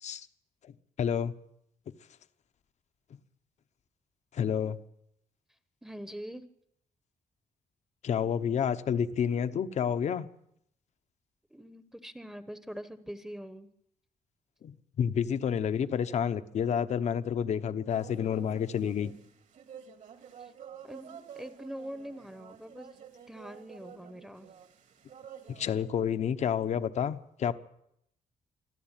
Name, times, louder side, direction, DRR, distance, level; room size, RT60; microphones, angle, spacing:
voice 1, 1.0-1.3 4.3-4.8 8.0-10.3 14.6-19.1 25.5-27.5, left 8 dB, 55° left, 12 dB, 1.0 m, -29 dB
voice 2, 5.8-6.4 11.5-13.7 20.4-20.5 20.8-22.9 23.3-24.5, equal, 5° right, 12 dB, 1.0 m, -43 dB
sound 1, 17.9-25.9, right 8 dB, 65° right, 2.6 m, -50 dB
25.0 x 14.0 x 9.1 m, 0.76 s
wide cardioid pair, 160°, 14 cm